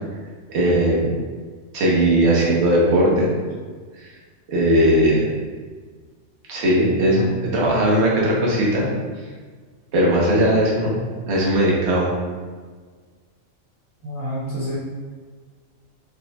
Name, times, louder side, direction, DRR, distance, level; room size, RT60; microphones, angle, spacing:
voice 1, 0.5-1.1 1.7-3.3 4.5-5.3 6.5-8.9 9.9-11.0 11.3-12.1, right 1 dB, 55° right, -4 dB, 1.1 m, -18 dB
voice 2, 14.0-14.8, equal, 80° left, -9 dB, 1.8 m, -28 dB
4.4 x 3.9 x 2.2 m, 1.5 s
omnidirectional pair, 1.4 m